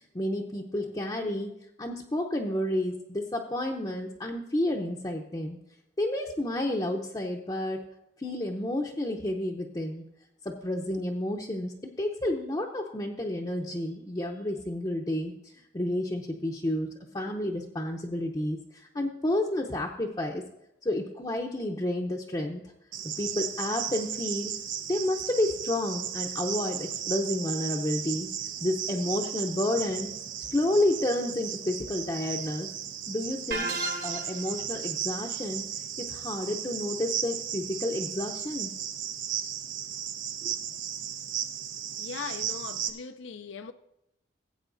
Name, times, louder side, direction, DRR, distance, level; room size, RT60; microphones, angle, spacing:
voice 1, 0.0-1.5 1.8-5.6 6.0-7.9 8.2-10.0 10.4-16.9 17.1-20.4 20.8-22.6 23.2-24.5 24.9-28.3 28.6-30.1 30.5-32.7 33.1-33.8 34.0-35.7 36.0-38.7 40.4-40.5, left 1 dB, 20° left, 0.6 m, -30 dB
Cricket, 22.9-42.9, right 9 dB, 90° right, 0.9 m, -35 dB
sound 1, 33.5-34.5, right 2 dB, 55° right, 1.2 m, -32 dB
voice 2, 42.0-43.7, left 6 dB, 80° left, 0.5 m, -39 dB
17.5 x 8.4 x 2.6 m
head